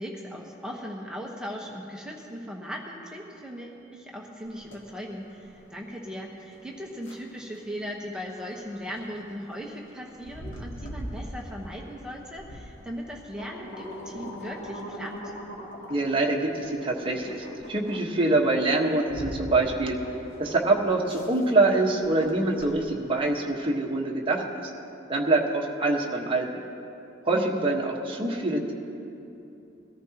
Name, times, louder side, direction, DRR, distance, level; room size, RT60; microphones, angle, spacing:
voice 1, 0.0-15.2 27.3-27.7, equal, 5° right, -2 dB, 1.1 m, -38 dB
sound 1, 4.5-23.3, equal, 80° left, 1.9 m, -43 dB
voice 2, 15.9-20.0 20.4-24.7 25.1-26.6 27.2-28.7, right 2 dB, 30° right, -2 dB, 1.3 m, -25 dB
21.5 x 13.5 x 2.9 m, 2.8 s
head